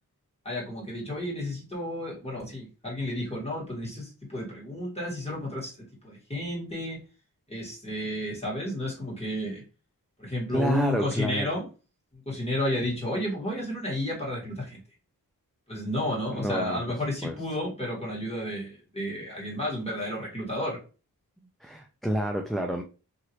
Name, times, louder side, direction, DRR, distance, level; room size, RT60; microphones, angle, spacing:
voice 1, 0.4-5.7 6.0-7.0 7.5-9.6 10.2-11.7 12.1-14.8 15.7-20.8, left 1 dB, 15° left, -5 dB, 1.8 m, -32 dB
voice 2, 10.5-11.5 16.3-16.8 17.2-17.4 21.6-22.8, right 1 dB, ahead, 2 dB, 0.3 m, -29 dB
3.0 x 2.7 x 2.9 m, 0.33 s
wide cardioid pair, 85°, 36 cm